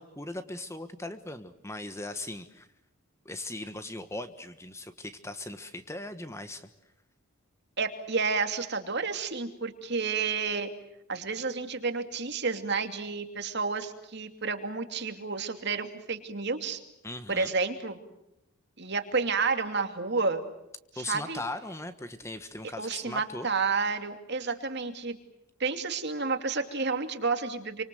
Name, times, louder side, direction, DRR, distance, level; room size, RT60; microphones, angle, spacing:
voice 1, 0.0-2.7 3.2-6.7 17.0-17.5 20.9-23.5, left 2 dB, 15° left, 9 dB, 1.4 m, -39 dB
voice 2, 7.8-10.7 11.1-16.8 17.3-18.0 18.8-20.4 21.1-21.4 22.8-25.2 25.6-27.8, right 4 dB, 50° right, 7 dB, 2.8 m, -30 dB
28.0 x 26.0 x 7.8 m, 0.86 s
head